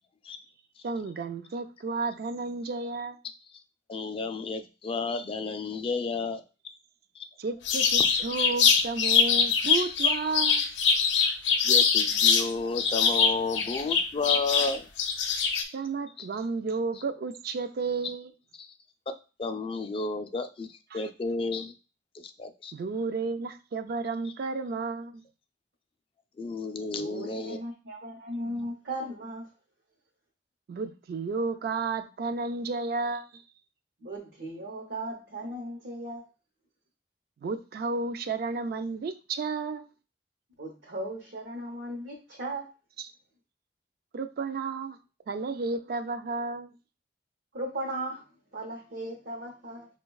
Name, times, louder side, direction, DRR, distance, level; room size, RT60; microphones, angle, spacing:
voice 1, 0.8-3.2 7.4-10.7 15.7-18.3 20.9-21.1 22.7-25.2 30.7-33.4 37.4-39.9 43.0-43.1 44.1-45.0 45.3-46.7, right 4 dB, 60° right, 0.3 m, -32 dB
voice 2, 3.9-6.4 9.4-9.9 10.2-10.3 11.6-14.9 16.2-16.3 18.6-18.7 19.1-19.2 19.4-20.7 20.9-21.7 22.1-22.7 26.4-27.6, left 4 dB, 30° left, 0.3 m, -32 dB
sound 1, 7.7-12.5 12.8-15.6, left 6 dB, 85° left, 0.5 m, -23 dB
voice 3, 26.8-29.5 34.0-36.2 40.6-42.7 47.5-48.2 48.5-49.9, right 1 dB, 80° right, 0.8 m, -37 dB
5.2 x 2.2 x 2.3 m
head